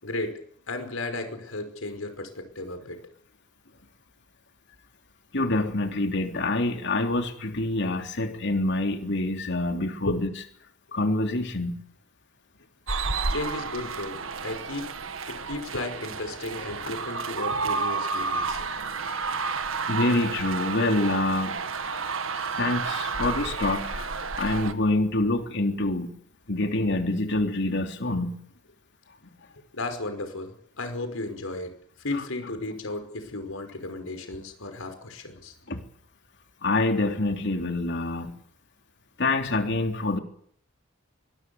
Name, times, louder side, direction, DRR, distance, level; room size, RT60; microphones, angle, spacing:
voice 1, 0.0-0.4 0.7-3.0 10.0-10.1 13.3-14.9 15.3-18.7 22.4-22.5 29.7-35.5, left 2 dB, 80° left, 7 dB, 5.4 m, -34 dB
voice 2, 5.3-10.3 10.9-11.8 19.9-21.6 21.8-21.9 22.6-26.1 26.5-28.4 35.7-35.8 36.6-38.3 39.2-40.2, left 2 dB, 60° left, 5 dB, 3.4 m, -26 dB
sound 1, 12.9-24.7, right 4 dB, 70° right, 1.7 m, -31 dB
24.0 x 22.0 x 7.2 m, 0.64 s
head